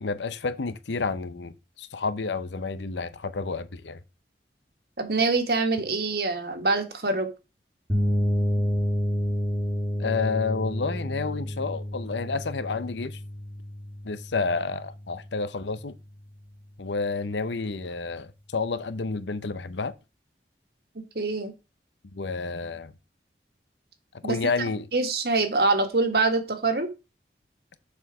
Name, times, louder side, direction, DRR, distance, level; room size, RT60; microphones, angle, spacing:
voice 1, 0.0-4.0 10.0-13.2 14.0-15.9 16.8-19.9 22.1-22.9 24.2-24.9, left 4 dB, 85° left, 0.7 m, -30 dB
voice 2, 5.0-7.3 21.1-21.5 24.2-24.4 24.9-26.9, right 3 dB, 60° right, 1.6 m, -24 dB
sound 1, 7.9-15.6, equal, 10° right, 1.7 m, -29 dB
7.1 x 4.5 x 6.0 m
head